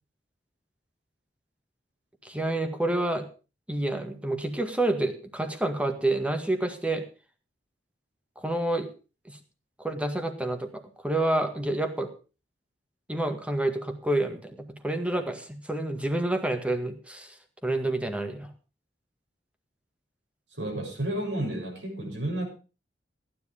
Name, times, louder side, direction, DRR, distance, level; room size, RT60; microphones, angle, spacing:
voice 1, 2.2-3.2 3.7-7.0 8.4-8.9 9.3-9.4 9.8-12.1 13.1-17.3 17.6-18.5, right 1 dB, 5° right, 6 dB, 1.9 m, -28 dB
voice 2, 20.6-22.5, right 1 dB, 85° right, 1 dB, 6.6 m, -31 dB
15.0 x 10.5 x 5.0 m, 0.34 s
head